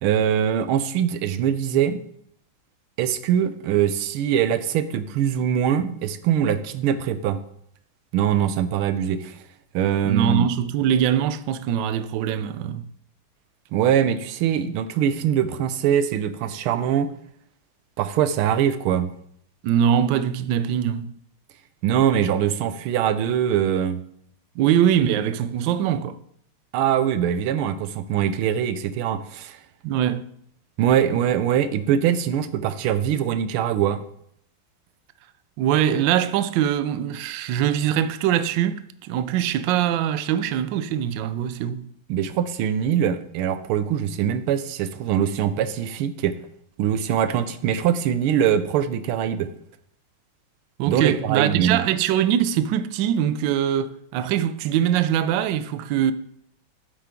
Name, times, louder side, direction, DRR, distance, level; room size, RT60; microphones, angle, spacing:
voice 1, 0.0-2.0 3.0-7.4 8.1-9.4 9.7-10.5 13.7-17.1 18.0-19.1 21.8-24.0 26.7-29.6 30.8-34.0 42.1-46.4 46.8-49.5 50.9-51.8, right 9 dB, 90° right, 1.5 m, -22 dB
voice 2, 10.0-12.8 19.6-21.1 24.6-26.2 29.8-30.3 35.6-41.9 50.8-56.1, right 10 dB, 75° right, 1.2 m, -22 dB
8.9 x 7.6 x 3.6 m
omnidirectional pair, 2.3 m